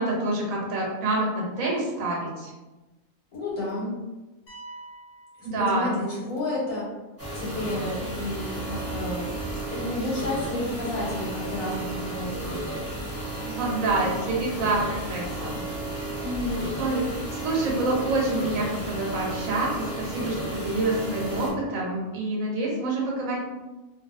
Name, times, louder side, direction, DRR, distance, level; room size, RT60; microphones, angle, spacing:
voice 1, 0.0-2.5 5.4-5.9 13.4-15.6 16.8-17.1 17.3-23.4, right 2 dB, 80° right, -3 dB, 1.3 m, -27 dB
voice 2, 3.3-4.0 5.6-6.9 7.3-9.3 9.7-12.6 16.2-16.6, left 2 dB, 85° left, -6 dB, 1.6 m, -31 dB
sound 1, 4.5-6.4, right 2 dB, 50° left, 0.9 m, -46 dB
sound 2, 7.2-21.5, right 1 dB, 15° left, 0.7 m, -33 dB
2.8 x 2.6 x 2.5 m, 1.1 s
omnidirectional pair, 1.4 m